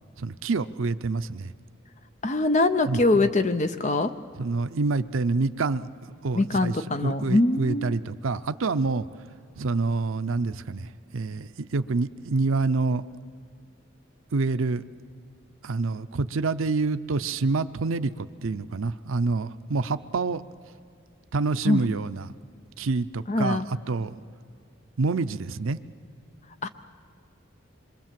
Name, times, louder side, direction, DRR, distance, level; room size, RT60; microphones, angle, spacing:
voice 1, 0.2-1.5 2.9-3.3 4.4-5.9 6.2-9.1 9.6-13.0 14.3-14.8 15.6-20.4 21.3-22.3 22.8-24.2 25.0-25.8, right 3 dB, 80° right, 12 dB, 0.6 m, -27 dB
voice 2, 2.2-4.1 6.3-7.9 21.7-21.8 23.3-23.7 26.6-26.7, left 2 dB, 35° left, 10 dB, 0.6 m, -23 dB
26.5 x 23.5 x 7.5 m, 2.3 s
head